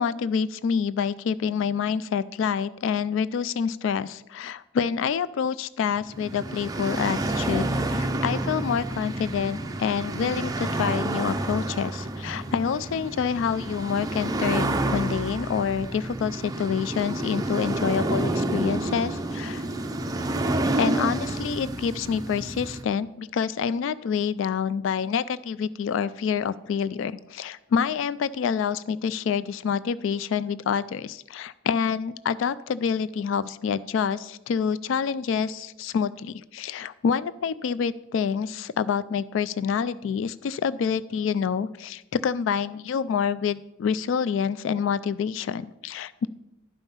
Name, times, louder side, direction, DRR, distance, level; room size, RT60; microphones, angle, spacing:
voice 1, 0.0-19.7 20.8-46.3, left 7 dB, 65° left, 16 dB, 0.3 m, -27 dB
sound 1, 6.0-22.8, right 2 dB, 20° right, 0.5 m, -29 dB
11.5 x 5.3 x 5.6 m, 0.92 s
head